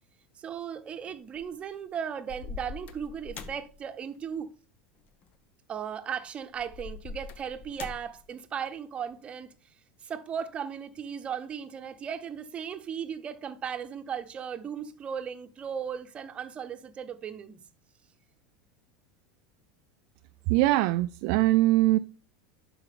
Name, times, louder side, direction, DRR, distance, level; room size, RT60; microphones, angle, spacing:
voice 1, 0.4-4.5 5.7-9.5 10.0-17.6, right 7 dB, 30° right, 0.9 m, -36 dB
sound 1, 1.1-1.6 2.3-3.8 5.1-5.2 6.6-8.3, left 5 dB, 40° left, 0.9 m, -42 dB
voice 2, 20.5-22.0, right 17 dB, 55° right, 0.3 m, -22 dB
11.0 x 4.7 x 3.5 m
hypercardioid pair, 80°, 4 cm